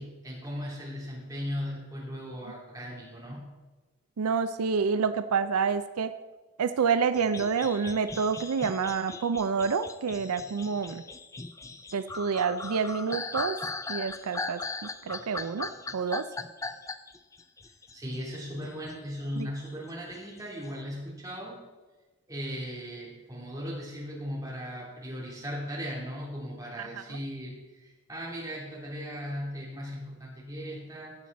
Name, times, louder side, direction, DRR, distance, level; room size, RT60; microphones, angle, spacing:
voice 1, 0.0-3.5 17.9-21.6 22.3-27.5 27.8-31.1, equal, 15° right, -5 dB, 3.2 m, -37 dB
voice 2, 4.2-6.1 6.6-11.0 11.9-13.6 13.9-14.6 15.0-16.3 19.4-19.5 26.8-27.2, right 5 dB, 90° right, 11 dB, 0.5 m, -28 dB
sound 1, 7.2-19.0 19.3-20.7, left 3 dB, 15° left, 0.3 m, -39 dB
14.5 x 9.2 x 4.1 m, 1.2 s
head